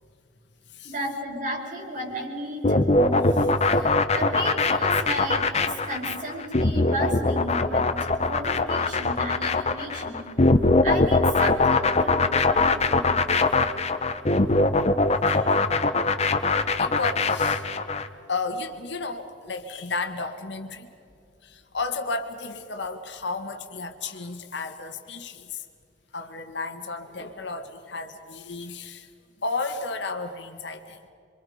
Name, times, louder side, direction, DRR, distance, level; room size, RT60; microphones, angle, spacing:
voice 1, 0.8-10.3 10.8-13.3 15.1-15.7, right 1 dB, 45° right, 0 dB, 5.0 m, -34 dB
sound 1, 2.6-18.1, left 3 dB, 35° left, 0.9 m, -22 dB
voice 2, 16.8-17.6 18.3-20.9 21.4-25.6 26.1-29.1 29.4-31.1, left 3 dB, 65° left, 6 dB, 1.8 m, -33 dB
27.5 x 25.0 x 5.1 m, 2.6 s
head